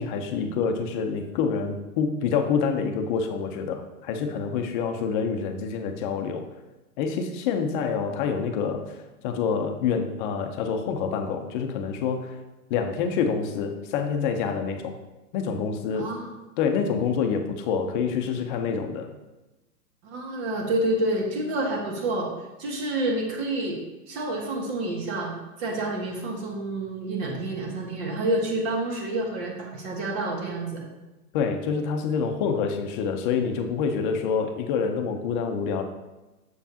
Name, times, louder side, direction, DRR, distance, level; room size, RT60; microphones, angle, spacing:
voice 1, 0.0-6.5 7.0-9.0 9.2-12.4 12.7-14.9 15.3-16.1 16.6-19.1 31.3-35.8, left 6 dB, 35° left, 5 dB, 0.8 m, -27 dB
voice 2, 15.9-16.3 20.0-22.3 22.6-23.8 24.1-30.8, right 2 dB, 45° right, 0 dB, 1.9 m, -28 dB
7.0 x 6.7 x 2.9 m, 1.1 s
hypercardioid pair, 130°, 46 cm